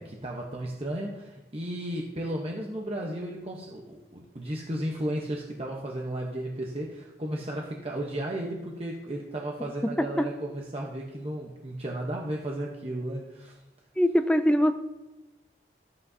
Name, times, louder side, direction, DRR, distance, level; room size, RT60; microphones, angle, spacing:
voice 1, 0.0-13.6, right 1 dB, 35° right, -1 dB, 0.9 m, -34 dB
voice 2, 14.0-14.7, equal, 5° left, 8 dB, 0.4 m, -22 dB
13.0 x 8.4 x 2.8 m, 1.0 s
head